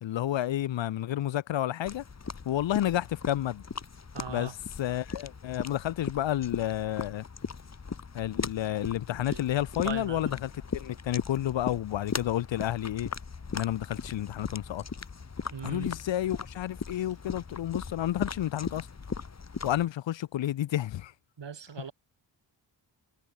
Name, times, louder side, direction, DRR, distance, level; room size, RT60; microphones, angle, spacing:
voice 1, 0.0-2.0 2.5-3.6 4.3-4.5 4.8-7.2 8.1-13.1 13.5-14.8 15.6-18.9 19.6-21.1, left 12 dB, 70° left, 0.6 m, -30 dB
sound 1, 1.9-19.9, left 5 dB, 35° left, 1.3 m, -39 dB
voice 2, 4.1-4.5 9.3-9.4 9.8-10.3 15.5-15.9 21.4-21.9, right 7 dB, 65° right, 2.4 m, -39 dB
wide cardioid pair, 85°, 46 cm